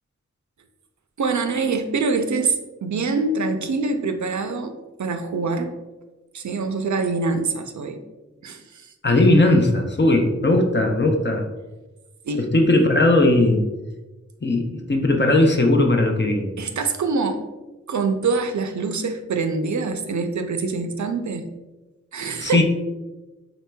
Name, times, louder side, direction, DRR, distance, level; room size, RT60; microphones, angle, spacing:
voice 1, 1.2-5.7 6.3-8.0 8.4-8.9 12.3-12.5 16.6-17.5 17.9-21.4 22.1-22.6, right 4 dB, 75° right, 6 dB, 0.4 m, -25 dB
voice 2, 9.0-11.5 12.4-13.6 14.4-16.5 22.4-22.6, left 2 dB, 40° left, 3 dB, 0.5 m, -18 dB
4.4 x 4.0 x 2.2 m, 1.1 s
wide cardioid pair, 60°, 29 cm